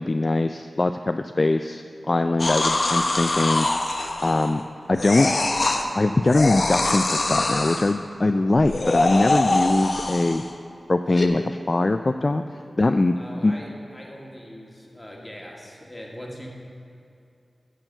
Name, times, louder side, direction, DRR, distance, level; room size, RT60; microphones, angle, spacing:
voice 1, 0.0-3.7 4.2-4.6 4.9-5.3 5.9-10.4 10.9-12.4 12.8-13.2 13.4-13.5, left 2 dB, 40° left, 8 dB, 0.3 m, -22 dB
sound 1, 2.4-4.6 5.0-5.8 6.3-7.9 8.6-10.5 11.1-11.3, left 2 dB, 55° left, 0.8 m, -24 dB
voice 2, 13.2-16.5, equal, 15° left, -2 dB, 2.0 m, -41 dB
13.0 x 4.6 x 7.9 m, 2.5 s
wide cardioid pair, 70°, 0 cm